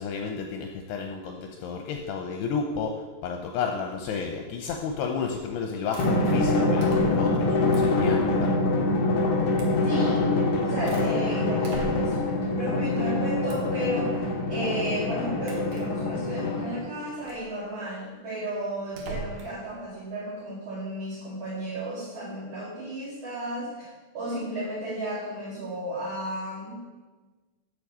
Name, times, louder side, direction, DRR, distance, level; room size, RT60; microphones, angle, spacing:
voice 1, 0.0-8.6, left 5 dB, 80° left, 3 dB, 2.7 m, -32 dB
sound 1, 5.2-5.5 5.9-6.1 6.8-7.4 7.7-8.0 9.5-9.8 10.4-11.1 11.6-12.3 13.5-13.8 15.4-15.9 17.2-17.5 18.9-19.6, right 2 dB, 60° right, 2.6 m, -40 dB
Drum, 6.0-17.0, left 2 dB, 65° left, 1.5 m, -25 dB
voice 2, 9.8-10.2 10.6-26.8, right 1 dB, 40° right, -8 dB, 2.8 m, -34 dB
8.3 x 6.9 x 7.5 m, 1.3 s
omnidirectional pair, 5.0 m